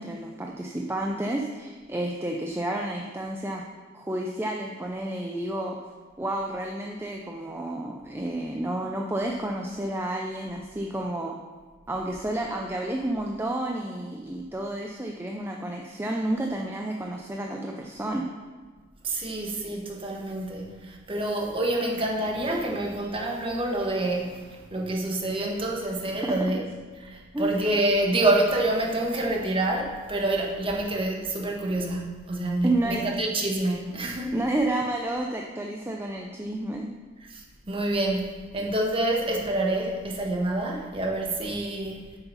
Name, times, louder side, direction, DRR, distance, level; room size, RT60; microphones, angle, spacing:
voice 1, 0.0-3.6 3.9-5.9 6.2-11.4 11.9-18.3 26.2-26.4 27.3-27.5 32.6-33.0 34.3-36.9, right 1 dB, 10° right, 1 dB, 0.5 m, -30 dB
voice 2, 19.0-34.4 37.2-42.0, right 1 dB, 25° right, -1 dB, 1.3 m, -27 dB
7.8 x 7.0 x 5.6 m, 1.4 s
head